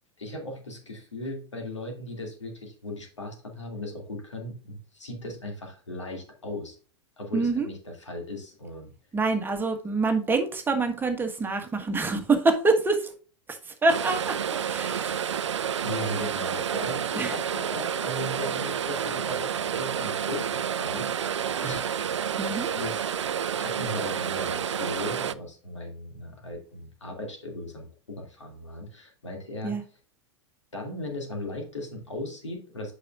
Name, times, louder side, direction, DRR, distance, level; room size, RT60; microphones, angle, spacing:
voice 1, 0.2-6.8 7.2-8.9 15.8-22.1 22.6-23.1 23.5-29.8 30.7-32.9, left 1 dB, 80° left, 2 dB, 2.4 m, -37 dB
voice 2, 7.3-7.7 9.1-13.1 13.5-14.4 14.6-15.5 17.2-17.3 22.4-22.7 29.6-29.8, right 3 dB, 15° right, 5 dB, 1.4 m, -26 dB
sound 1, 13.9-25.3, right 8 dB, 75° right, 0.4 m, -29 dB
8.5 x 6.0 x 2.5 m, 0.39 s
figure-of-eight pair, 90°, 15 cm